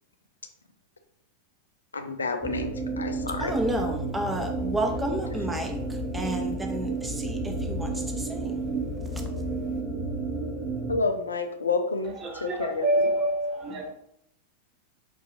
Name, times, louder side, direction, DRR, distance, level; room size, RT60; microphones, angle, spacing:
voice 1, 1.9-3.5 10.9-12.2 12.4-13.1, left 3 dB, 85° left, 7 dB, 0.4 m, -29 dB
sound 1, 2.4-11.0, right 2 dB, 30° left, 1.2 m, -31 dB
voice 2, 3.4-8.6 9.1-9.2, right 1 dB, 10° right, 2 dB, 0.8 m, -31 dB
voice 3, 12.0-13.9, right 1 dB, 35° right, 1 dB, 1.0 m, -27 dB
5.1 x 2.6 x 2.9 m, 0.75 s
figure-of-eight pair, 95°, 0 cm